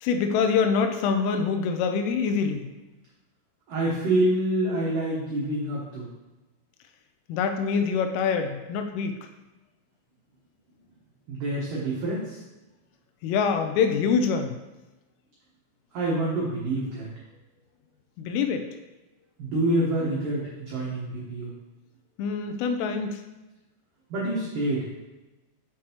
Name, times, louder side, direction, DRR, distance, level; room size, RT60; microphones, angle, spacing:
voice 1, 0.0-2.7 7.3-9.1 13.2-14.5 18.2-18.7 22.2-23.2, left 5 dB, 85° left, 6 dB, 3.1 m, -25 dB
voice 2, 3.7-6.1 11.3-12.4 15.9-17.1 19.4-21.5 24.1-24.9, right 1 dB, 85° right, -6 dB, 1.9 m, -27 dB
7.4 x 6.5 x 2.9 m, 1.1 s
omnidirectional pair, 5.8 m